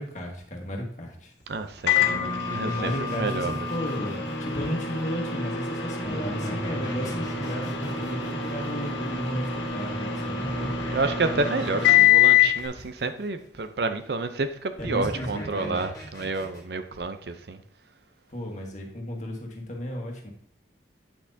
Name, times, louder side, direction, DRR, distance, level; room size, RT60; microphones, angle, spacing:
voice 1, 0.0-1.3 2.6-10.8 14.8-15.8 18.3-20.3, equal, 40° left, 1.5 m, -34 dB
voice 2, 1.5-3.7 10.5-17.6, right 3 dB, 65° right, 0.6 m, -30 dB
Microwave oven, 1.9-12.6, left 9 dB, 80° left, 1.5 m, -25 dB
sound 1, 2.1-4.9 6.0-9.5 10.4-13.1 14.8-16.6, equal, 20° left, 1.6 m, -39 dB
8.6 x 6.0 x 2.7 m
head